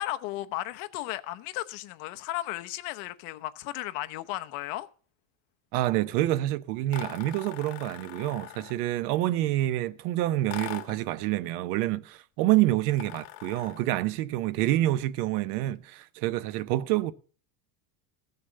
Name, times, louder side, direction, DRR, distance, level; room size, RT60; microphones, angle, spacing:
voice 1, 0.0-4.9, left 16 dB, 65° left, 0.9 m, -35 dB
voice 2, 5.7-17.1, right 15 dB, 70° right, 0.8 m, -27 dB
sound 1, 6.9-8.9 10.5-11.1 12.9-13.9, left 15 dB, 80° left, 1.6 m, -41 dB
15.5 x 6.8 x 6.6 m
cardioid pair, 180°, 48 cm